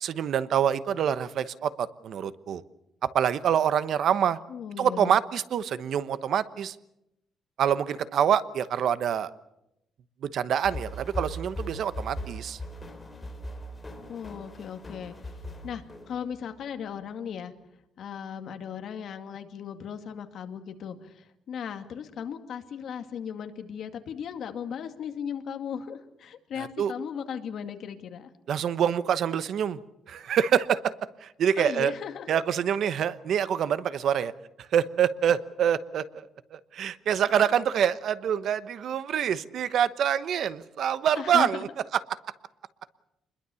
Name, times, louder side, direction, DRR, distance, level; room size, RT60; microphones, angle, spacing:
voice 1, 0.0-2.6 3.1-4.4 4.8-6.8 7.6-9.3 10.2-12.6 26.6-26.9 28.5-29.8 30.1-30.9 31.2-31.9 32.3-34.3 34.6-41.7, right 9 dB, 55° right, 14 dB, 1.0 m, -26 dB
voice 2, 4.5-5.1 14.1-15.2 15.6-17.5 18.0-28.3 31.6-32.3 41.1-41.5, left 8 dB, 55° left, 7 dB, 2.1 m, -37 dB
sound 1, 10.6-16.6, left 1 dB, 15° left, 3.8 m, -39 dB
28.0 x 21.5 x 7.0 m, 0.85 s
cardioid pair, 160°, 0 cm